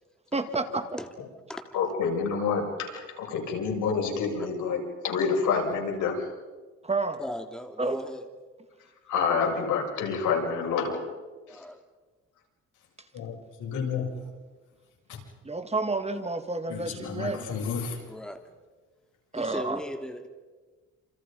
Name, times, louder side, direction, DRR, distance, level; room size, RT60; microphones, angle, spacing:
voice 1, 0.3-0.8 6.8-7.2 7.8-8.0 15.4-17.4 19.3-19.8, right 3 dB, 20° right, 8 dB, 2.4 m, -29 dB
voice 2, 1.7-6.3 8.8-11.0 11.5-11.6 13.1-14.1 15.1-15.2 16.7-18.0, left 5 dB, 80° left, 0 dB, 7.4 m, -29 dB
voice 3, 7.2-8.3 11.5-11.8 18.1-18.4 19.3-20.3, equal, ahead, 6 dB, 2.6 m, -37 dB
29.5 x 28.0 x 5.5 m, 1.3 s
cardioid pair, 90°, 30 cm